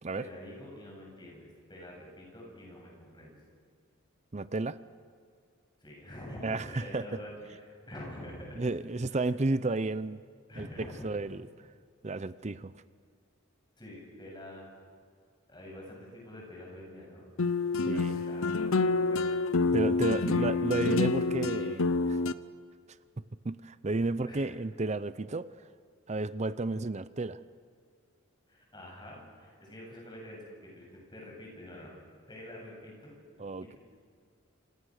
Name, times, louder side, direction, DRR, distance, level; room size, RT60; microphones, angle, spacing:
voice 1, 0.1-3.4 5.8-8.6 9.1-9.2 10.5-11.0 13.8-14.7 15.5-17.3 17.9-19.3 19.6-19.7 20.0-20.5 24.3-24.5 28.5-31.9 32.3-33.1 33.6-33.8, left 1 dB, 20° left, -1 dB, 8.0 m, -46 dB
voice 2, 4.3-4.8 6.4-7.2 8.6-10.2 10.6-11.4 12.0-12.7 17.8-18.2 19.7-22.2 23.4-25.5 26.1-27.4 33.4-33.8, right 3 dB, 35° right, 15 dB, 0.6 m, -32 dB
sound 1, 17.4-22.3, left 3 dB, 80° left, 0.8 m, -27 dB
28.0 x 27.0 x 6.5 m, 2.2 s
head